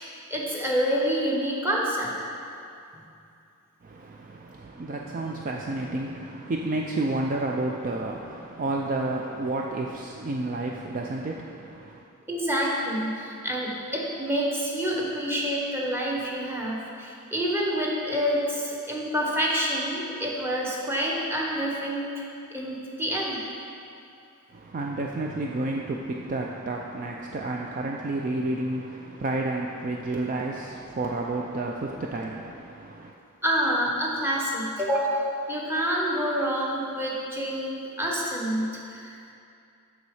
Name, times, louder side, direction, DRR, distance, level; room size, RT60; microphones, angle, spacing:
voice 1, 0.0-2.1 12.3-22.1 22.5-23.5 33.4-39.1, equal, 10° right, -3 dB, 1.1 m, -27 dB
voice 2, 3.8-12.0 24.5-33.1, right 2 dB, 35° right, 0 dB, 0.4 m, -31 dB
6.8 x 6.3 x 4.8 m, 2.5 s
head